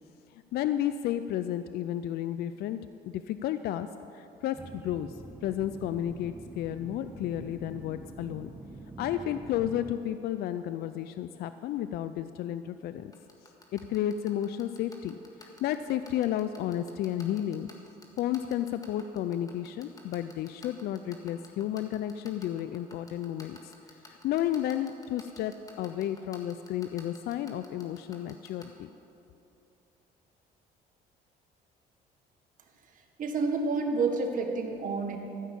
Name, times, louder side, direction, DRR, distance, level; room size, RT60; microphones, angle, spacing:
voice 1, 0.3-2.8 3.0-3.9 4.1-8.5 9.0-13.1 13.7-15.1 15.4-17.7 18.2-23.7 24.1-28.9, left 11 dB, 70° left, 11 dB, 0.4 m, -32 dB
sound 1, 4.5-10.0, right 2 dB, 10° right, 0.8 m, -45 dB
sound 2, 13.1-28.6, left 2 dB, 20° left, 1.8 m, -50 dB
voice 2, 33.2-35.2, right 4 dB, 50° right, 3 dB, 1.6 m, -29 dB
14.5 x 5.8 x 8.4 m, 2.8 s
cardioid pair, 110°, 17 cm